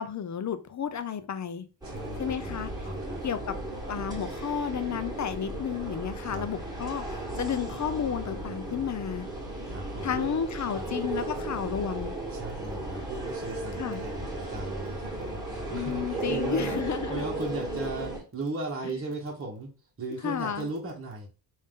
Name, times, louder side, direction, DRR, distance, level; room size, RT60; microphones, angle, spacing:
voice 1, 0.0-1.6 2.2-2.7 3.2-9.3 10.0-12.1 13.8-14.0 15.7-17.3 20.2-20.7, left 8 dB, 40° left, 0.5 m, -32 dB
sound 1, 1.8-18.2, right 2 dB, 10° right, 1.4 m, -35 dB
voice 2, 1.8-2.6 2.8-3.2 6.2-6.5 9.7-10.4 10.7-10.9 12.3-19.7 20.0-21.3, right 2 dB, 30° right, 1.0 m, -37 dB
3.6 x 2.7 x 3.6 m
cardioid pair, 80°, 43 cm